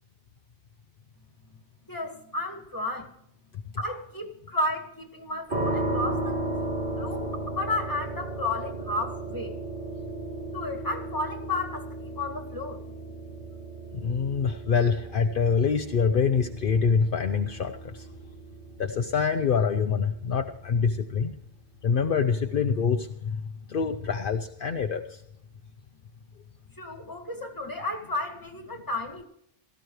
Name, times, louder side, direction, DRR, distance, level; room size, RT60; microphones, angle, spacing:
voice 1, 1.9-3.1 3.8-6.4 7.0-9.6 10.5-12.8 26.7-29.2, left 2 dB, 20° left, 2 dB, 2.0 m, -32 dB
sound 1, 5.5-20.3, right 2 dB, 55° right, 3.1 m, -35 dB
voice 2, 13.9-18.1 18.8-21.3 21.8-23.4 23.7-25.2, left 6 dB, 60° left, 7 dB, 0.9 m, -25 dB
17.5 x 15.0 x 3.2 m, 0.71 s
omnidirectional pair, 1.0 m